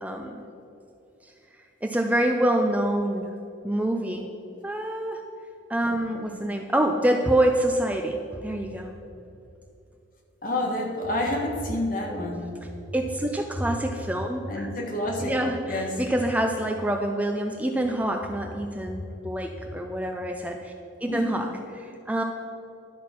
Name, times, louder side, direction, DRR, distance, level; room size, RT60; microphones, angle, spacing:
voice 1, 0.0-0.5 1.8-3.3 3.6-4.3 4.6-5.2 5.7-8.9 12.9-14.7 15.2-20.7 21.0-21.5 22.1-22.2, right 1 dB, 10° right, 3 dB, 0.4 m, -26 dB
voice 2, 10.4-12.5 14.5-15.3 15.6-16.0 21.1-21.4, left 1 dB, 45° left, 1 dB, 1.4 m, -29 dB
12.0 x 4.3 x 5.9 m, 2.7 s
head